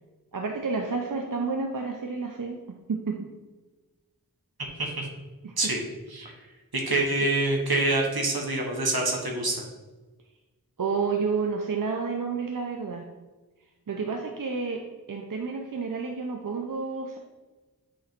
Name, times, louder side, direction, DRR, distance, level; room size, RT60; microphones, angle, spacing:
voice 1, 0.3-2.6 2.9-3.3 5.4-5.5 6.2-6.3 10.8-13.1 13.9-14.8 15.1-17.2, right 4 dB, 60° right, 2 dB, 0.7 m, -30 dB
voice 2, 6.7-9.6, right 2 dB, 85° right, 0 dB, 1.3 m, -26 dB
8.3 x 3.1 x 4.4 m, 1.2 s
wide cardioid pair, 40°, 36 cm